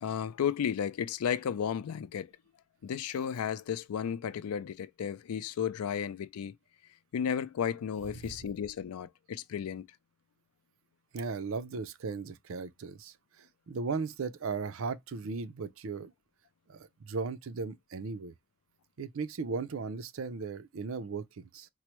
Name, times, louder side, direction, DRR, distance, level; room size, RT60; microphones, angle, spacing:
voice 1, 0.0-2.3 2.8-6.6 7.1-9.9, left 8 dB, 90° left, 0.4 m, -33 dB
voice 2, 11.1-16.1 16.7-18.3 19.0-21.7, right 4 dB, 65° right, 0.5 m, -37 dB
4.5 x 2.0 x 2.9 m
head